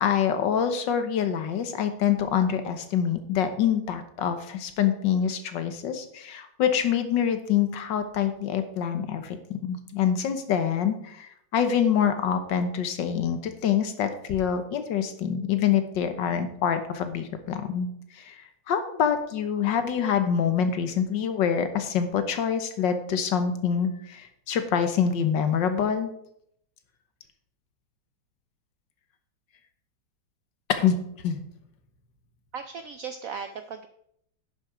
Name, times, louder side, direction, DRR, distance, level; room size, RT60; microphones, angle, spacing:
voice 1, 0.0-26.1 30.7-31.0 31.2-31.4, left 8 dB, 75° left, 9 dB, 1.6 m, -26 dB
voice 2, 32.5-33.9, right 6 dB, 75° right, 9 dB, 0.7 m, -37 dB
10.5 x 6.5 x 4.9 m, 0.73 s
omnidirectional pair, 2.0 m